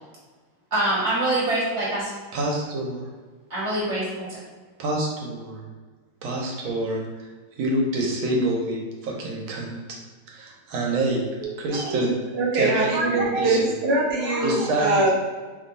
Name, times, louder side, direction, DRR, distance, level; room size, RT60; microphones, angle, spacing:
voice 1, 0.7-2.1 3.5-4.4, right 1 dB, 20° right, -7 dB, 1.0 m, -25 dB
voice 2, 2.3-3.1 4.8-5.6 6.2-7.3 7.6-9.8 10.3-11.2 11.6-12.2 12.5-13.7 14.4-15.1, right 2 dB, 85° right, -1 dB, 1.6 m, -27 dB
voice 3, 11.4-12.0 12.4-15.1, right 2 dB, 55° right, -5 dB, 0.7 m, -23 dB
3.4 x 2.3 x 3.9 m, 1.4 s
omnidirectional pair, 2.1 m